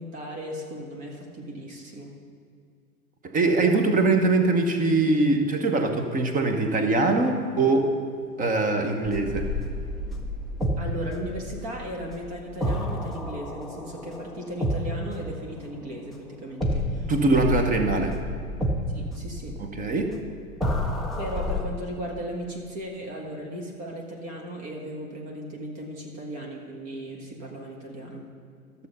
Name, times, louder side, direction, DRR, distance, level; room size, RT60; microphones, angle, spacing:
voice 1, 0.0-2.1 10.8-17.1 18.9-19.6 21.2-28.2, equal, 35° right, 0 dB, 1.8 m, -36 dB
voice 2, 3.3-7.9 8.4-9.5 17.1-18.1 19.6-20.1, right 3 dB, 20° right, 5 dB, 1.0 m, -22 dB
sound 1, 9.0-16.1 16.6-21.6, equal, ahead, 0.3 m, -30 dB
13.5 x 6.9 x 5.5 m, 2.2 s
figure-of-eight pair, 100°, 44 cm